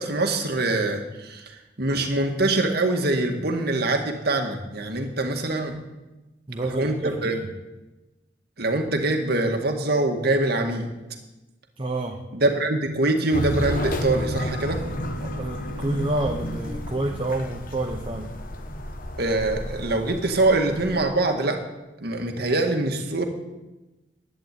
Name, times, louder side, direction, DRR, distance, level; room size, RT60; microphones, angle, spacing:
voice 1, 0.0-1.4 1.8-5.7 6.7-7.3 8.6-10.9 12.3-14.8 19.2-21.6 22.0-23.2, right 2 dB, 60° right, 4 dB, 2.0 m, -24 dB
voice 2, 6.5-7.4 11.8-12.2 15.2-18.3, right 2 dB, 30° right, 2 dB, 1.1 m, -29 dB
sound 1, 13.3-21.0, equal, 50° left, 1.3 m, -31 dB
sound 2, 13.5-16.2, right 1 dB, 85° left, 1.8 m, -40 dB
11.5 x 10.0 x 9.2 m, 1.1 s
head